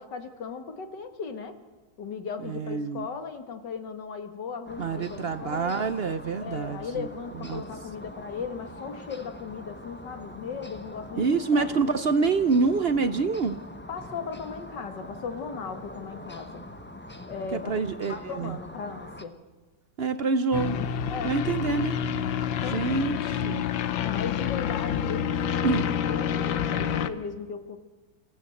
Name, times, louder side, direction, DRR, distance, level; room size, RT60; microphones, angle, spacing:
voice 1, 0.0-1.6 2.0-5.9 6.4-11.7 13.9-16.6 17.3-17.8 18.1-19.3 21.1-21.3 22.6-23.0 24.1-25.8 26.1-27.8, left 5 dB, 65° left, 7 dB, 2.2 m, -37 dB
voice 2, 2.4-3.1 4.8-7.1 7.4-7.6 11.2-13.6 17.5-18.6 20.0-20.8 21.2-22.0 22.6-23.7 25.6-25.9, right 4 dB, 60° right, 10 dB, 0.6 m, -26 dB
sound 1, 4.7-19.3, left 1 dB, 10° left, 0.5 m, -43 dB
sound 2, 20.5-27.1, left 8 dB, 85° left, 1.7 m, -28 dB
26.0 x 14.5 x 7.7 m, 1.3 s
omnidirectional pair, 2.0 m